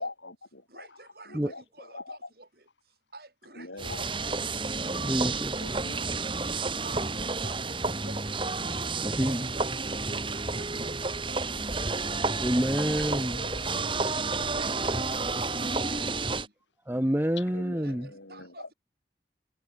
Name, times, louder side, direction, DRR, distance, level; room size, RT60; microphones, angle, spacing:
voice 1, 0.0-0.9 1.3-2.2 3.6-4.0 5.0-5.1 5.6-6.1 6.5-6.6 13.0-14.5 17.5-18.7, left 2 dB, 85° left, 7.4 m, -43 dB
voice 2, 0.7-5.0 6.5-8.5 9.0-11.9 14.1-16.5 17.8-18.7, right 2 dB, 55° right, 7.8 m, -51 dB
sound 1, 3.8-16.5, right 3 dB, 25° right, 3.0 m, -30 dB
voice 3, 4.9-5.6 9.0-9.4 12.4-13.5 16.9-18.1, equal, 10° right, 1.0 m, -28 dB
head